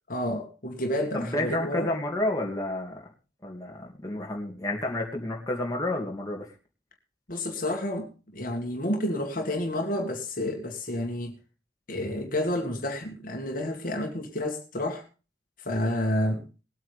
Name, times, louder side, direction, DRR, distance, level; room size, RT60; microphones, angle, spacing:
voice 1, 0.1-1.9 7.3-11.4 11.9-15.0 15.6-16.5, left 1 dB, 50° left, 3 dB, 2.2 m, -30 dB
voice 2, 1.1-3.0 3.4-6.5, left 1 dB, 20° left, 0 dB, 2.6 m, -30 dB
20.5 x 8.7 x 3.4 m, 0.32 s
head